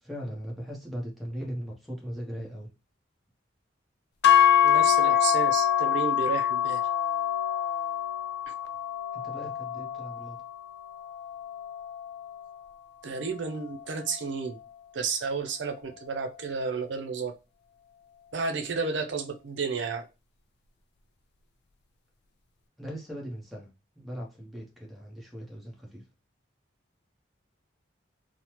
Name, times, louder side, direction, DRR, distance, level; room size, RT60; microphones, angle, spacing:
voice 1, 0.0-2.7 9.1-10.4 22.8-23.7 24.0-26.0, equal, ahead, -2 dB, 0.7 m, -39 dB
sound 1, 4.2-12.5, left 10 dB, 55° left, 0.3 m, -25 dB
voice 2, 4.6-6.8 8.5-8.6 13.0-14.6 14.9-17.3 18.3-20.0, right 5 dB, 65° right, 5 dB, 0.5 m, -32 dB
3.2 x 2.0 x 2.9 m, 0.28 s
head